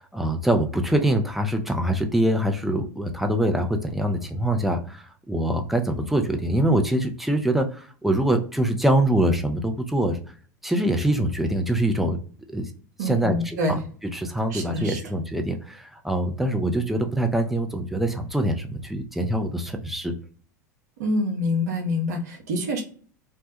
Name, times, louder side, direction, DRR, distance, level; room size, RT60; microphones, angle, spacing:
voice 1, 0.0-10.2 10.6-12.2 12.5-12.7 13.0-13.8 14.1-20.1, right 1 dB, ahead, 4 dB, 0.4 m, -24 dB
voice 2, 13.0-13.8 14.5-15.0 21.0-22.8, left 1 dB, 65° right, 2 dB, 0.7 m, -26 dB
2.2 x 2.1 x 2.7 m, 0.43 s
figure-of-eight pair, 80°, 10 cm